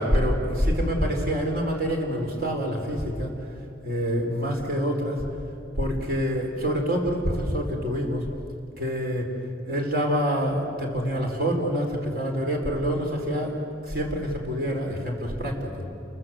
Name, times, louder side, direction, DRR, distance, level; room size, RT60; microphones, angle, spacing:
voice 1, 0.0-3.3 3.8-5.3 5.8-8.2 8.8-9.3 9.7-15.8, equal, 55° right, 1 dB, 4.5 m, -26 dB
29.5 x 24.0 x 7.9 m, 2.9 s
head